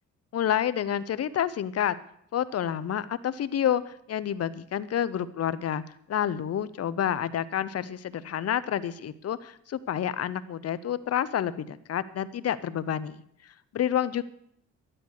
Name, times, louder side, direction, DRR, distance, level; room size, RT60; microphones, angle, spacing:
voice 1, 0.3-2.0 2.3-5.8 6.1-13.2 13.7-14.2, left 10 dB, 55° left, 16 dB, 0.9 m, -29 dB
12.5 x 11.0 x 6.6 m, 0.70 s
cardioid pair, 90°, 30 cm